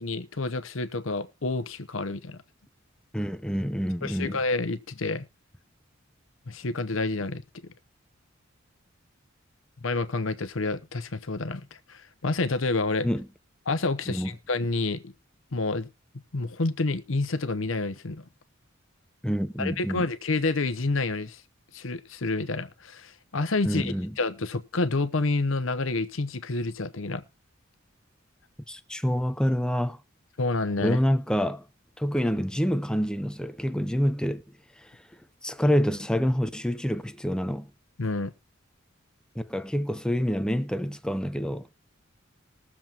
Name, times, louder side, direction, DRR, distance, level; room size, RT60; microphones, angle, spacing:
voice 1, 0.0-2.4 4.0-5.2 6.5-7.4 9.8-13.1 13.7-15.1 15.5-15.9 16.3-18.2 19.6-21.4 21.7-27.2 30.4-31.0 38.0-38.3, left 3 dB, 70° left, 0.9 m, -29 dB
voice 2, 3.1-4.4 13.0-13.3 14.1-14.3 19.2-20.0 23.6-24.2 28.7-30.0 30.8-31.6 32.0-34.4 35.4-37.7 39.4-41.6, equal, 5° left, 0.7 m, -27 dB
21.0 x 7.3 x 2.9 m
head